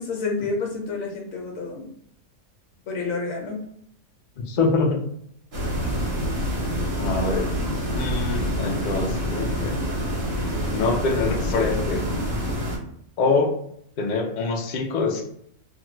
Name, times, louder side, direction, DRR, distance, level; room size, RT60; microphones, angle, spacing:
voice 1, 0.0-1.9 2.9-3.6, left 4 dB, 70° left, 0 dB, 1.2 m, -29 dB
voice 2, 4.4-5.0 5.8-5.9 7.0-7.5 7.9-9.8 10.6-12.1 13.2-13.6 14.0-15.2, left 3 dB, 90° left, 2 dB, 0.4 m, -24 dB
sound 1, 5.5-12.8, equal, 45° right, 1.0 m, -26 dB
2.5 x 2.3 x 3.0 m, 0.69 s
omnidirectional pair, 1.5 m